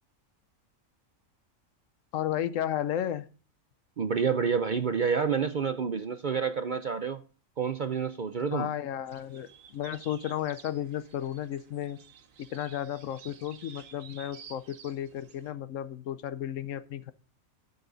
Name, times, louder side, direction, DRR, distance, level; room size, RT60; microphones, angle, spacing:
voice 1, 2.1-3.3 8.5-12.0 12.4-17.1, left 11 dB, 75° left, 15 dB, 1.0 m, -33 dB
voice 2, 4.0-7.2 7.6-8.7, right 6 dB, 55° right, 10 dB, 0.5 m, -28 dB
sound 1, 9.1-15.5, right 7 dB, 75° right, 1.4 m, -52 dB
12.0 x 7.0 x 3.9 m, 0.37 s
omnidirectional pair, 1.4 m